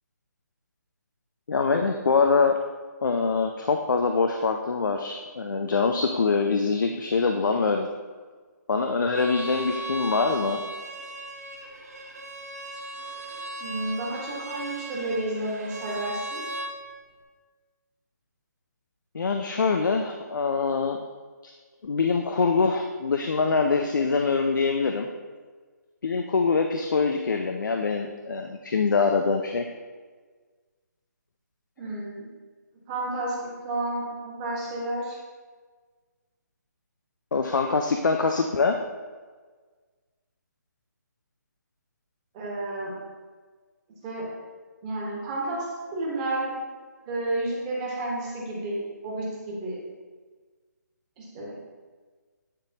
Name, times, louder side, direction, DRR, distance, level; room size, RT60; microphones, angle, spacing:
voice 1, 1.5-2.6 3.0-7.9 8.7-10.6 19.1-21.0 21.8-25.1 26.0-29.6 37.3-38.8, left 4 dB, 80° left, 4 dB, 0.5 m, -24 dB
Bowed string instrument, 9.1-16.7, right 1 dB, 55° right, 1.0 m, -37 dB
voice 2, 13.6-16.4 31.8-32.3 32.9-35.2 42.3-42.9 44.0-44.2 44.8-45.7 45.9-46.5 47.1-49.8 51.2-51.5, right 2 dB, 20° right, -4 dB, 1.4 m, -31 dB
9.9 x 3.4 x 2.9 m, 1.4 s
hypercardioid pair, 165°, 10 cm